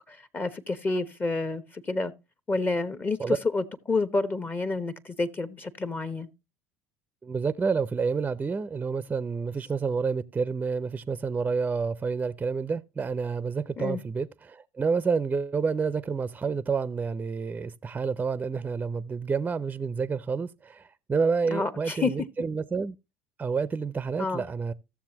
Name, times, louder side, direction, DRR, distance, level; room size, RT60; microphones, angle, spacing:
voice 1, 0.0-2.1 2.5-6.3 13.8-14.0 21.5-22.1 24.2-24.4, left 3 dB, 25° left, 1.0 m, -29 dB
voice 2, 7.2-23.0 23.4-24.7, right 5 dB, 20° right, 0.5 m, -29 dB
14.5 x 7.1 x 2.9 m
hypercardioid pair, 70°, 7 cm